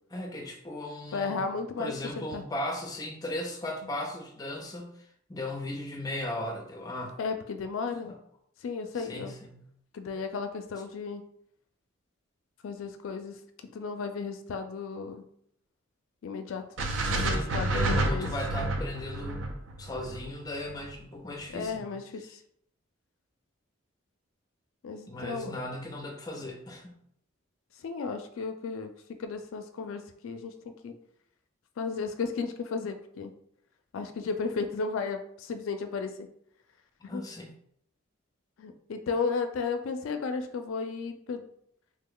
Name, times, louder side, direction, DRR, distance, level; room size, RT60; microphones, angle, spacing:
voice 1, 0.1-1.5 1.8-4.9 5.3-7.1 8.0-8.2 8.9-9.6 16.8-19.5 19.8-22.0 25.1-27.0 37.0-37.5, left 1 dB, 20° left, 2 dB, 0.5 m, -37 dB
voice 2, 1.1-2.4 7.2-8.1 8.6-9.3 9.9-11.2 12.6-13.4 13.7-15.2 16.2-18.3 21.5-22.3 24.8-25.6 27.8-28.9 29.2-30.5 30.8-30.9 31.8-33.3 33.9-36.3 37.0-37.2 38.6-41.5, left 4 dB, 80° left, 7 dB, 0.4 m, -34 dB
sound 1, 16.8-21.0, right 2 dB, 65° right, 0.5 m, -30 dB
3.2 x 2.2 x 3.6 m, 0.70 s
head